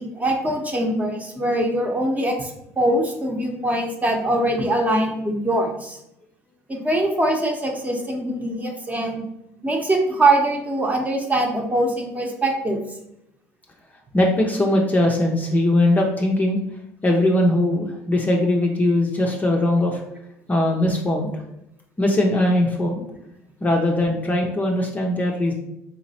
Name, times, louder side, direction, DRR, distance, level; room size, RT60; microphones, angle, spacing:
voice 1, 0.0-2.5 2.8-6.0 6.7-9.2 9.6-12.8, right 1 dB, 20° right, 2 dB, 0.9 m, -22 dB
voice 2, 14.1-16.6 17.0-20.0 20.5-21.3 22.0-23.0 23.6-25.5, left 1 dB, 20° left, 0 dB, 0.6 m, -20 dB
4.0 x 2.9 x 2.8 m, 0.81 s
hypercardioid pair, 75°, 8 cm